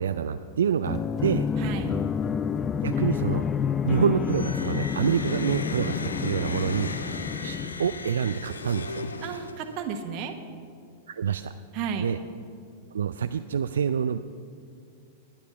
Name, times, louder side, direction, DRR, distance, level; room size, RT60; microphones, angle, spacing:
voice 1, 0.0-1.5 2.8-3.4 3.8-6.9 7.4-9.1 11.1-11.5 12.0-12.2 12.9-14.2, right 7 dB, 75° right, 10 dB, 0.3 m, -27 dB
sound 1, 0.8-8.4, left 7 dB, 25° left, 0.3 m, -29 dB
voice 2, 1.6-1.9 9.2-10.4 11.7-12.1, right 7 dB, 45° right, 6 dB, 1.2 m, -32 dB
sound 2, 4.2-9.9, left 3 dB, 80° left, 0.7 m, -36 dB
11.0 x 9.9 x 5.7 m, 2.3 s
figure-of-eight pair, 100°, 0 cm